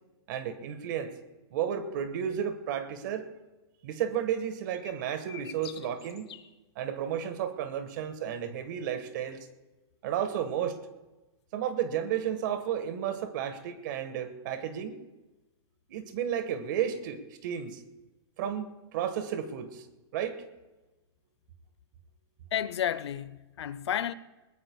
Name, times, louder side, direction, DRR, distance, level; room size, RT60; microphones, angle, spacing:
voice 1, 0.3-1.1 1.5-3.3 3.8-6.4 6.7-9.5 10.0-10.8 11.5-15.0 15.9-17.8 18.4-19.9 20.1-20.4, right 9 dB, 45° right, 1.4 m, -32 dB
sound 1, 4.7-6.5, left 11 dB, 70° left, 1.0 m, -47 dB
voice 2, 22.5-24.1, left 10 dB, 85° left, 0.7 m, -31 dB
21.0 x 19.5 x 2.3 m
supercardioid pair, 165°, 14 cm